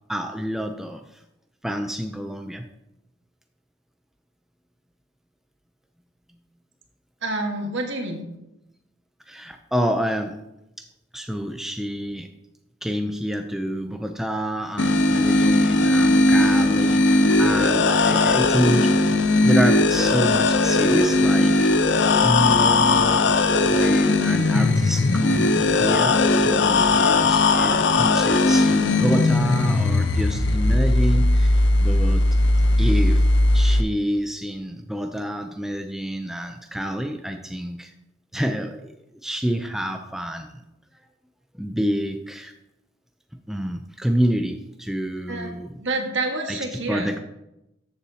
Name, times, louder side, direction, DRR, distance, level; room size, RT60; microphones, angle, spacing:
voice 1, 0.1-1.0 1.6-2.6 9.3-10.4 10.8-10.9 11.1-12.3 12.8-18.9 19.4-21.7 22.2-32.3 32.8-33.3 33.5-37.9 38.3-38.9 39.2-40.6 41.6-42.5 43.5-45.8 46.5-47.2, equal, ahead, 5 dB, 0.4 m, -27 dB
voice 2, 7.2-8.2 45.3-47.1, right 2 dB, 70° right, 3 dB, 1.5 m, -28 dB
sound 1, 14.8-33.8, left 2 dB, 65° left, 0.6 m, -18 dB
13.0 x 7.0 x 2.8 m, 0.89 s
head